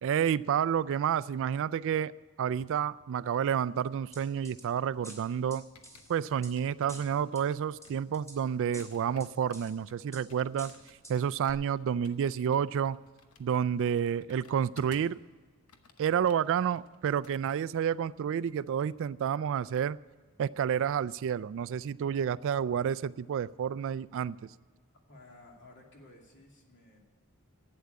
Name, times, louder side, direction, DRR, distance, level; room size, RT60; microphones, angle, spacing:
voice 1, 0.0-2.1 2.4-5.6 6.1-10.7 11.1-13.0 13.4-15.2 16.0-20.0 20.4-24.5, right 8 dB, 60° right, 18 dB, 0.3 m, -30 dB
sound 1, 3.1-5.4 5.7-15.2 15.5-17.3 17.6-17.9, left 4 dB, 75° left, 1.0 m, -59 dB
sound 2, 4.1-4.6 5.0-6.5 6.9-7.4 7.8-8.4 8.7-9.7 10.1-10.2 10.6-11.2 11.5-11.6, right 1 dB, 15° left, 2.7 m, -49 dB
voice 2, 25.1-27.0, left 2 dB, 55° left, 0 dB, 2.6 m, -55 dB
11.5 x 8.7 x 9.4 m, 1.5 s
head